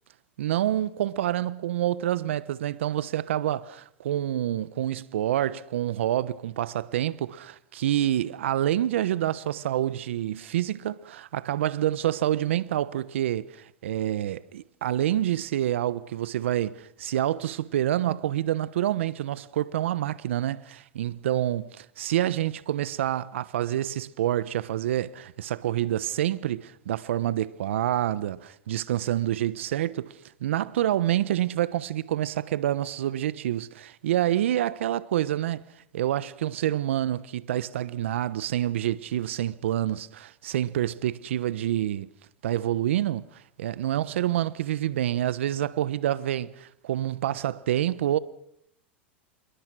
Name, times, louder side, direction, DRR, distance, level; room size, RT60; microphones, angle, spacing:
voice 1, 0.4-35.6 35.9-42.1 42.4-48.2, right 12 dB, 80° right, 1.1 m, -27 dB
27.5 x 22.0 x 6.3 m
hypercardioid pair, 110°, 7 cm